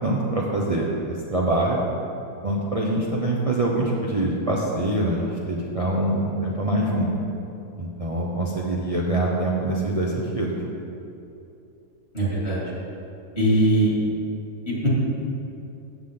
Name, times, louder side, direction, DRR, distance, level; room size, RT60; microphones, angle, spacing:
voice 1, 0.0-1.8 2.4-7.1 7.8-10.6, right 1 dB, 30° right, -3 dB, 0.9 m, -24 dB
voice 2, 12.1-12.7 13.3-13.9 14.6-14.9, right 1 dB, 45° left, -6 dB, 3.4 m, -21 dB
14.0 x 8.5 x 3.9 m, 2.8 s
omnidirectional pair, 1.5 m